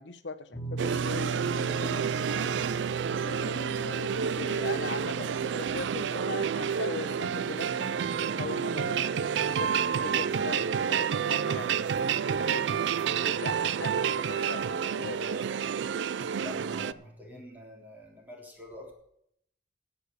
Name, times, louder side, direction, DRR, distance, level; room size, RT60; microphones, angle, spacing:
voice 1, 0.0-2.1 3.2-7.9 8.2-9.1 9.4-15.4, left 3 dB, 80° left, 10 dB, 1.0 m, -40 dB
sound 1, 0.5-12.8 13.0-13.3 14.9-15.0, right 3 dB, 30° left, 4.8 m, -40 dB
sound 2, 0.8-16.9, right 7 dB, 75° right, 0.4 m, -29 dB
voice 2, 16.4-18.9, left 1 dB, 10° right, -1 dB, 3.6 m, -46 dB
11.5 x 8.7 x 6.7 m, 0.72 s
head